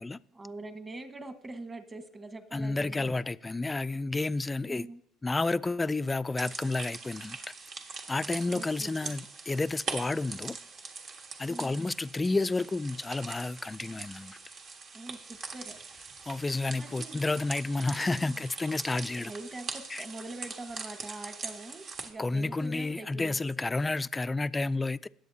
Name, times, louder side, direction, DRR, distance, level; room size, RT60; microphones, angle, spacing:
voice 1, 0.3-3.2 4.7-5.0 8.5-9.1 11.5-11.7 14.9-15.8 16.7-17.2 18.1-18.4 19.2-23.7, right 2 dB, 25° right, 1.4 m, -44 dB
voice 2, 2.5-4.9 5.2-7.4 8.1-10.6 11.4-14.4 16.3-19.3 19.9-20.0 22.2-25.1, left 3 dB, 15° left, 0.3 m, -31 dB
sound 1, 6.4-22.1, right 4 dB, 50° right, 1.5 m, -42 dB
19.0 x 7.9 x 2.8 m
supercardioid pair, 95°, 0 cm